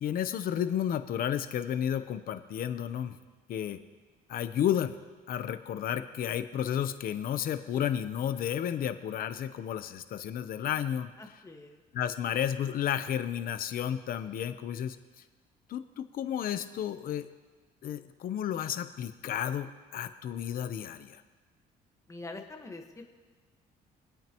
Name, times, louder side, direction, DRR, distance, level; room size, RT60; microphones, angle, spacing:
voice 1, 0.0-3.2 3.5-3.8 4.3-4.9 5.3-11.1 11.9-15.0 15.7-17.3 17.8-21.2, left 10 dB, 60° left, 10 dB, 0.8 m, -32 dB
voice 2, 11.2-11.8 22.1-23.0, left 2 dB, 15° left, 3 dB, 1.4 m, -44 dB
24.5 x 8.8 x 3.0 m, 1.4 s
cardioid pair, 110°, 17 cm